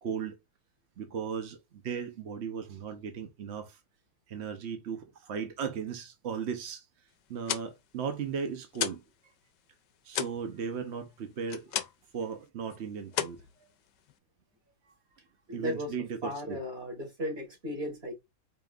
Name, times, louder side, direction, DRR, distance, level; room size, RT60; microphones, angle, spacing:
voice 1, 0.0-0.4 1.0-1.6 1.8-3.8 4.3-6.8 7.3-9.0 10.0-11.8 12.1-13.4 15.5-16.6, right 6 dB, 70° right, 0.6 m, -36 dB
sound 1, 7.2-9.1 9.4-12.2 12.5-12.8 13.1-14.2, left 11 dB, 75° left, 1.1 m, -35 dB
voice 2, 15.5-15.9 16.2-18.1, equal, 30° right, 2.5 m, -35 dB
5.1 x 2.9 x 2.4 m
omnidirectional pair, 2.1 m